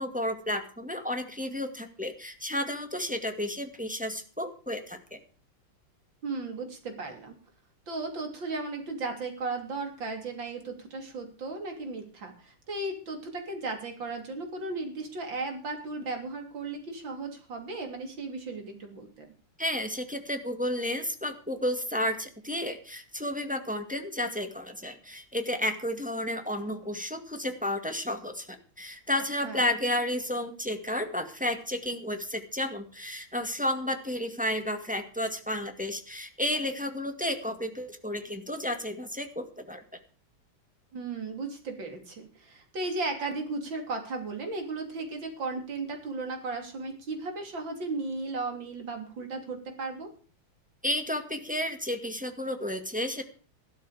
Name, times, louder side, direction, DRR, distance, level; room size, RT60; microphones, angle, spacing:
voice 1, 0.0-5.2 19.6-39.8 50.8-53.2, left 1 dB, 5° right, 5 dB, 1.8 m, -32 dB
voice 2, 6.2-7.4 7.9-19.3 29.4-29.6 40.9-50.1, right 3 dB, 65° right, 4 dB, 3.7 m, -35 dB
14.5 x 12.5 x 5.0 m, 0.39 s
omnidirectional pair, 2.3 m